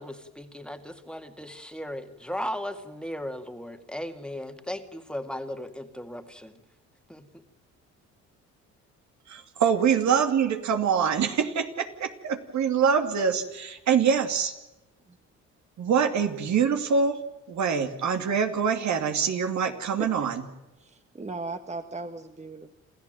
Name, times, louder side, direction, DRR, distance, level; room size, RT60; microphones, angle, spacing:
voice 1, 0.0-6.6 7.1-7.4, equal, 5° left, 6 dB, 2.1 m, -37 dB
voice 2, 9.3-14.5 15.8-17.2 17.5-20.4, right 6 dB, 70° right, 6 dB, 2.6 m, -25 dB
voice 3, 20.8-22.7, right 3 dB, 25° right, 8 dB, 1.5 m, -37 dB
27.5 x 14.5 x 9.1 m, 1.0 s
cardioid pair, 90°, 30 cm